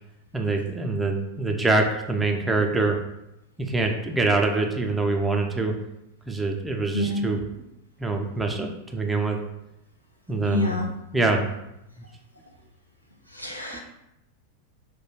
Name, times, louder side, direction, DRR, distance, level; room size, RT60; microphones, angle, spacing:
voice 1, 0.3-3.0 3.6-5.7 6.3-7.5 8.0-9.4 10.3-10.8 11.1-11.5 13.7-13.8, right 3 dB, 10° right, 3 dB, 0.3 m, -24 dB
voice 2, 6.9-7.3 10.4-10.8 13.4-13.8, left 2 dB, 90° left, -1 dB, 0.4 m, -27 dB
2.2 x 2.1 x 3.1 m, 0.87 s
figure-of-eight pair, 90°, 0 cm